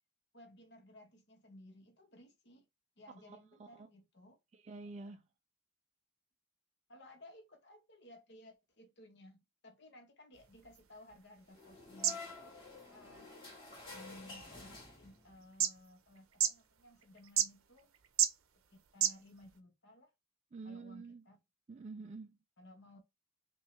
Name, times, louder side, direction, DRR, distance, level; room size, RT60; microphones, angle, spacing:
voice 1, 0.3-2.7 3.0-4.4 6.9-13.3 13.9-17.9 18.7-20.1 20.6-21.4 22.6-23.0, left 1 dB, 55° left, 1.1 m, -58 dB
voice 2, 3.3-3.9 4.5-5.2 20.5-21.2 21.7-22.4, right 3 dB, 30° right, 0.3 m, -48 dB
sound 1, 10.3-19.6, right 9 dB, 80° right, 0.6 m, -39 dB
sound 2, 11.5-15.4, left 3 dB, 25° left, 2.0 m, -50 dB
5.4 x 2.3 x 3.2 m
head